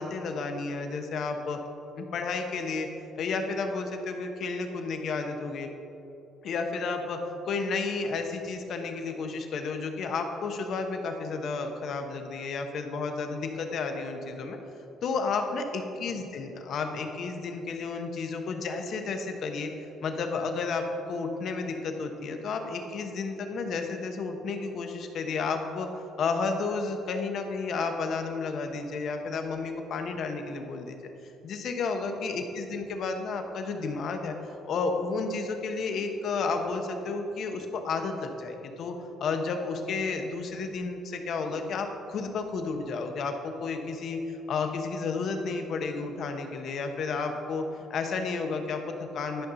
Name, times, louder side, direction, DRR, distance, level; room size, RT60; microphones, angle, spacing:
voice 1, 0.0-1.6 2.0-2.9 3.2-5.7 6.4-14.6 15.0-19.7 20.0-25.9 26.2-31.0 31.4-34.4 34.7-49.5, left 4 dB, 65° left, 5 dB, 0.9 m, -32 dB
11.5 x 5.4 x 3.9 m, 2.9 s
supercardioid pair, 80°, 0 cm